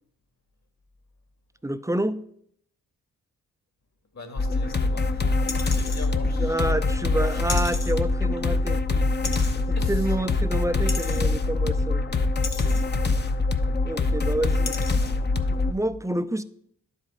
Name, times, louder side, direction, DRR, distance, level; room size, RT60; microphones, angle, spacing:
voice 1, 1.6-2.2 6.4-8.8 9.7-12.0 13.8-14.7 15.5-16.4, right 1 dB, 10° right, 0.5 m, -28 dB
voice 2, 4.1-5.5 5.7-7.4 9.7-10.1 10.8-11.3 12.1-12.9, left 3 dB, 50° left, 1.8 m, -43 dB
sound 1, 4.4-15.7, left 3 dB, 30° left, 0.7 m, -24 dB
sound 2, 5.5-6.1 7.5-7.9 9.2-9.6 10.9-11.2 12.4-12.8 13.9-14.0 14.7-15.1 15.6-15.7, left 5 dB, 65° left, 1.1 m, -34 dB
11.0 x 5.0 x 4.3 m
supercardioid pair, 45°, 35 cm